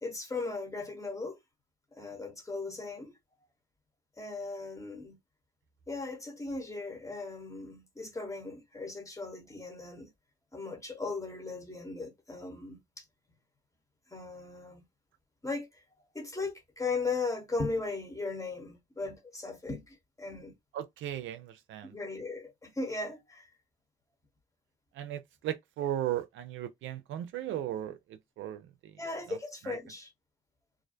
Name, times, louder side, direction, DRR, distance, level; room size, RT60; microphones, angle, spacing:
voice 1, 0.0-1.4 2.0-3.1 4.2-5.2 5.9-10.1 10.5-13.0 14.1-14.8 15.4-15.7 16.1-20.5 21.8-23.5 29.0-30.1, left 3 dB, 15° left, 0.9 m, -37 dB
voice 2, 20.7-21.9 25.0-28.0 28.4-28.9 29.3-29.4 29.6-29.8, right 12 dB, 75° right, 0.4 m, -36 dB
2.5 x 2.2 x 2.5 m
cardioid pair, 90°, 20 cm